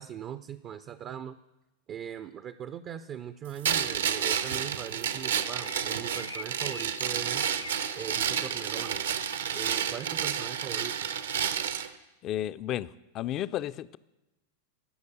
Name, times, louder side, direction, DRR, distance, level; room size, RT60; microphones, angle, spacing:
voice 1, 0.0-1.4 1.9-7.6 8.0-9.0 9.5-11.1, right 9 dB, 30° right, 13 dB, 0.4 m, -40 dB
sound 1, 3.6-11.9, right 8 dB, 65° right, 0.7 m, -30 dB
sound 2, 3.8-9.1, left 2 dB, 85° left, 0.5 m, -46 dB
voice 2, 12.2-14.0, left 12 dB, 35° left, 16 dB, 0.4 m, -33 dB
15.0 x 6.6 x 8.3 m, 1.0 s
figure-of-eight pair, 90°, 0 cm